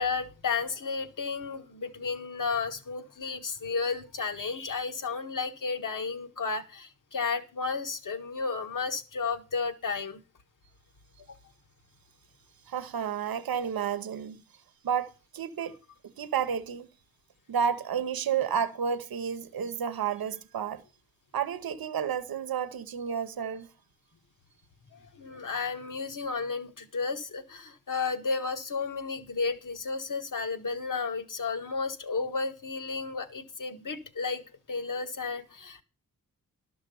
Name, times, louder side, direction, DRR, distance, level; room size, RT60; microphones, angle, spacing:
voice 1, 0.0-10.2 11.3-11.4 24.9-34.4 34.7-35.8, left 4 dB, 60° left, 1.4 m, -33 dB
voice 2, 12.7-14.4 14.8-15.7 16.2-16.9 17.5-20.8 21.3-23.7, right 7 dB, 80° right, 0.9 m, -31 dB
12.5 x 6.0 x 6.9 m
wide cardioid pair, 100°, 35 cm